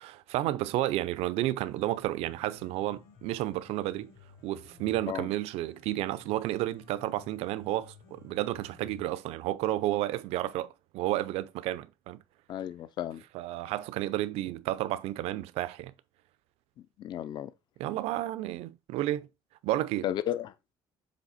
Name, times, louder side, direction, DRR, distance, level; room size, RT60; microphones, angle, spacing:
voice 1, 0.0-4.1 4.4-12.2 13.3-15.9 17.8-19.3 19.6-20.1, right 15 dB, 80° right, 0.6 m, -31 dB
Piano, 1.4-9.4, left 7 dB, 70° left, 2.7 m, -55 dB
voice 2, 12.5-13.2 17.0-17.5 20.0-20.7, left 11 dB, 45° left, 0.5 m, -34 dB
7.5 x 3.5 x 4.1 m
cardioid pair, 145°, 10 cm